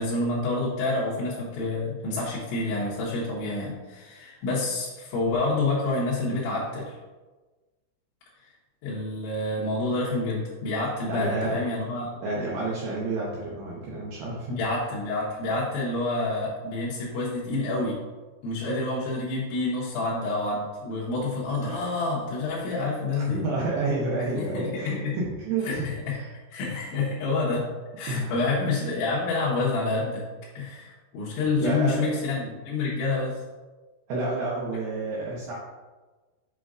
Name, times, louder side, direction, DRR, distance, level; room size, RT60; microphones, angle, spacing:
voice 1, 0.0-7.0 8.8-12.1 14.5-18.0 18.4-23.5 24.4-25.2 25.6-26.2 26.5-27.7 28.0-30.2 30.6-33.4, left 3 dB, 80° left, -7 dB, 3.4 m, -28 dB
voice 2, 11.1-11.6 11.9-14.6 21.6-21.8 23.1-25.9 26.2-26.3 28.1-28.3 31.6-32.2 34.1-35.5, right 3 dB, 80° right, -5 dB, 2.2 m, -30 dB
7.6 x 5.6 x 2.5 m, 1.3 s
omnidirectional pair, 5.4 m